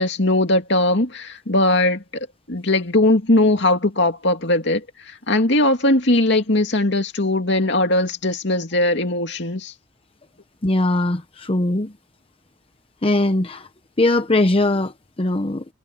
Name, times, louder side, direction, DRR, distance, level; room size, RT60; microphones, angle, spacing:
voice 1, 0.0-9.7, left 1 dB, 60° left, 2.6 m, -19 dB
voice 2, 10.6-11.9 13.0-13.7 14.0-15.6, left 2 dB, 30° left, 0.7 m, -20 dB
head